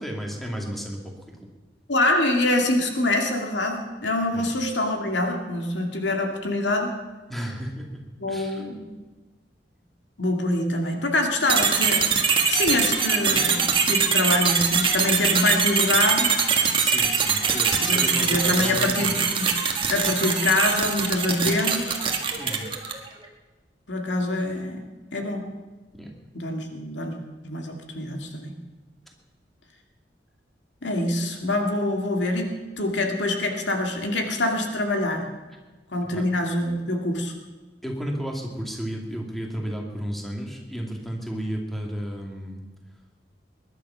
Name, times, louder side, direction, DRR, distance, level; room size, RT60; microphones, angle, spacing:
voice 1, 0.0-1.4 4.3-4.5 7.3-8.7 16.8-19.1 22.4-22.7 25.9-26.1 36.1-36.2 37.8-42.6, equal, ahead, 0 dB, 2.3 m, -33 dB
voice 2, 1.9-6.9 8.2-8.9 10.2-12.1 12.5-16.3 17.9-19.5 19.9-22.0 23.9-24.8 25.1-25.4 26.3-27.2 27.4-28.5 30.8-32.5 32.8-35.2 35.9-37.3, left 1 dB, 80° left, 3 dB, 2.3 m, -25 dB
sound 1, 11.5-23.1, right 5 dB, 30° right, 1.6 m, -22 dB
21.0 x 11.5 x 5.7 m, 1.2 s
head